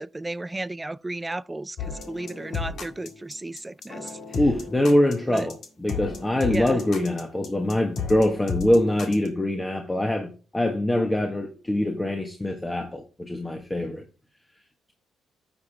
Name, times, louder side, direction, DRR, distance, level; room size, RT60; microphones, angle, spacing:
voice 1, 0.0-4.2 5.3-5.5 6.5-6.8, right 2 dB, 15° right, 0.4 m, -33 dB
sound 1, 1.8-9.3, left 5 dB, 65° left, 2.0 m, -34 dB
voice 2, 4.3-5.5 5.8-14.0, left 1 dB, 15° left, 1.3 m, -24 dB
9.5 x 6.7 x 3.4 m
cardioid pair, 90°, 0 cm